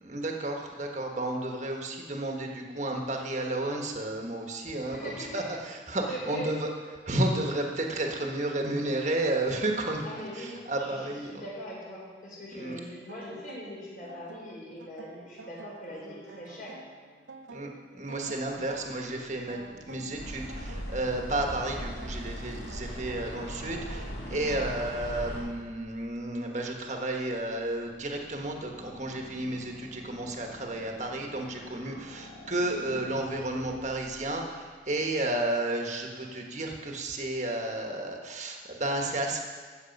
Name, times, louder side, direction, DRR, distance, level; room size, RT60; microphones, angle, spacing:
voice 1, 0.0-6.7 7.0-10.0 10.3-11.3 12.5-12.8 17.5-19.6 19.9-39.4, right 1 dB, 40° right, 2 dB, 1.3 m, -32 dB
voice 2, 4.8-5.6 6.1-6.5 10.0-16.8 24.3-24.5, equal, 45° left, -5 dB, 4.3 m, -41 dB
sound 1, 12.7-25.5, right 3 dB, 85° right, 0.7 m, -50 dB
sound 2, 19.1-35.4, equal, 80° left, 1.8 m, -50 dB
sound 3, 20.1-25.4, equal, 65° left, 3.1 m, -39 dB
13.5 x 8.0 x 5.3 m, 1.5 s
head